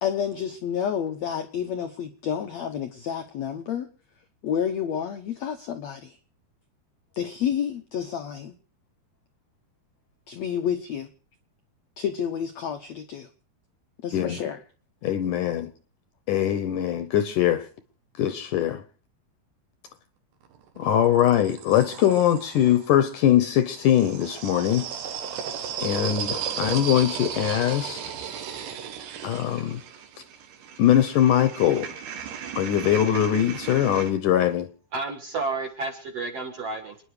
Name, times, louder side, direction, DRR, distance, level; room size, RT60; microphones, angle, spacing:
voice 1, 0.0-3.9 4.4-6.2 7.1-8.5 10.3-11.1 12.0-13.3 14.0-14.6, left 8 dB, 90° left, 1.5 m, -29 dB
voice 2, 15.0-15.7 16.3-17.7 18.2-18.8 20.8-24.9 25.8-28.0 29.2-29.8 30.8-31.9 32.6-34.7, left 11 dB, 75° left, 2.0 m, -22 dB
sound 1, 20.4-22.9 23.7-34.1, right 8 dB, 90° right, 3.8 m, -35 dB
voice 3, 34.9-37.0, right 3 dB, 55° right, 2.0 m, -31 dB
28.0 x 10.0 x 4.9 m
omnidirectional pair, 4.6 m